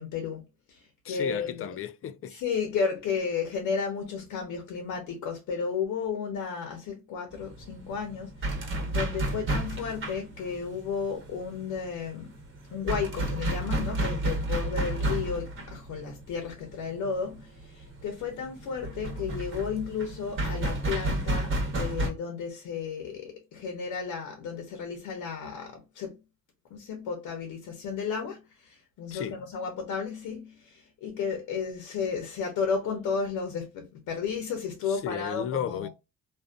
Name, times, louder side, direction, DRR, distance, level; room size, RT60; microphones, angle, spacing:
voice 1, 0.0-1.7 2.3-12.3 12.7-26.2 26.7-35.9, left 6 dB, 90° left, 0.8 m, -33 dB
voice 2, 1.0-2.3 29.1-29.4 34.9-35.9, left 9 dB, 50° left, 0.4 m, -34 dB
sound 1, 7.3-22.1, right 1 dB, 45° right, 1.1 m, -32 dB
2.6 x 2.3 x 2.3 m
cardioid pair, 90°, 30 cm